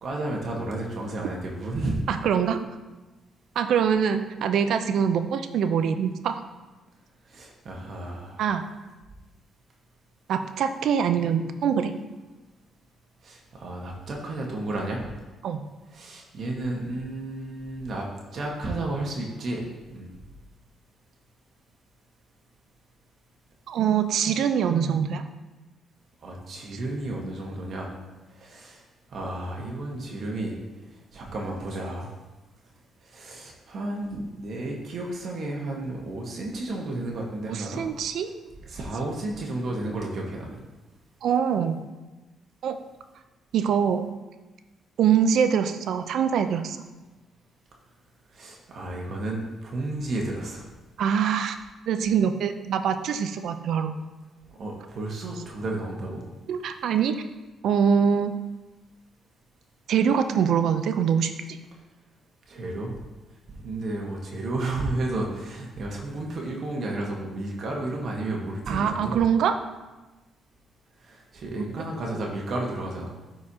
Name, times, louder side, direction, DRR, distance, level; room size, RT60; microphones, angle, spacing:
voice 1, 0.0-2.2 7.3-8.4 13.2-15.0 15.9-18.1 18.3-19.6 19.9-20.1 26.2-27.9 28.3-28.8 29.1-30.6 31.1-32.1 33.0-37.9 38.6-40.6 48.3-50.7 54.5-56.3 62.5-63.0 63.5-69.1 71.0-73.1, right 2 dB, 55° right, -1 dB, 1.4 m, -32 dB
voice 2, 2.1-2.6 3.6-6.4 8.4-8.7 10.3-11.9 15.4-15.6 23.7-25.2 37.5-38.3 41.2-41.8 42.6-42.8 43.5-44.1 45.0-46.8 51.0-51.6 51.9-53.9 56.5-57.2 57.6-58.3 59.9-61.6 68.7-69.5, right 7 dB, 75° right, 8 dB, 0.6 m, -24 dB
12.5 x 4.6 x 2.9 m, 1.2 s
cardioid pair, 90°, 0 cm